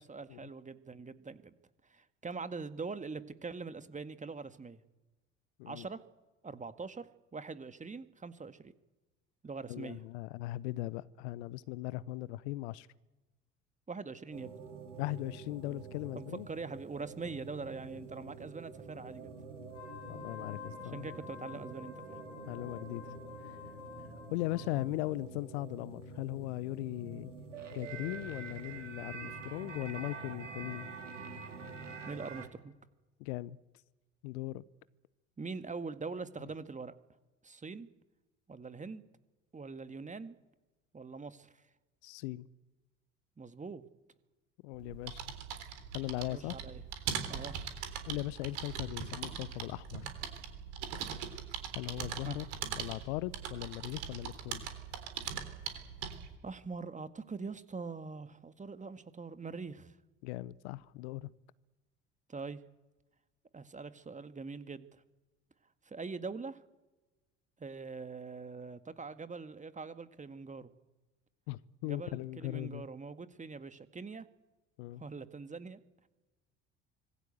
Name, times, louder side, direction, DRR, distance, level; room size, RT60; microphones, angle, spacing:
voice 1, 0.0-1.5 1.9-4.8 5.7-6.0 6.4-8.7 9.4-10.0 13.9-14.5 16.1-19.3 20.9-22.2 32.1-32.7 35.4-36.9 37.4-37.9 38.5-39.0 39.5-40.4 40.9-41.5 43.4-43.9 46.3-46.8 47.3-47.5 52.3-52.4 56.4-59.9 62.3-62.6 63.5-65.0 65.9-66.6 67.6-70.7 71.8-74.3 75.0-75.8, right 4 dB, 20° right, 1.9 m, -43 dB
voice 2, 9.7-12.9 15.0-16.5 20.1-21.1 21.6-21.7 22.5-23.1 24.3-27.3 27.7-30.9 33.2-33.6 34.2-34.6 42.0-42.5 44.6-45.4 45.9-46.6 48.1-50.0 51.7-52.5 52.8-54.6 60.2-61.3 71.5-72.9 74.8-75.0, left 18 dB, 65° left, 0.9 m, -39 dB
sound 1, 14.3-32.5, right 4 dB, 85° right, 2.4 m, -47 dB
Wind instrument woodwind instrument, 19.6-24.9, left 7 dB, 85° left, 7.6 m, -49 dB
sound 2, 44.7-56.3, right 8 dB, 70° right, 3.6 m, -41 dB
25.5 x 20.0 x 8.0 m
figure-of-eight pair, 60°, 36 cm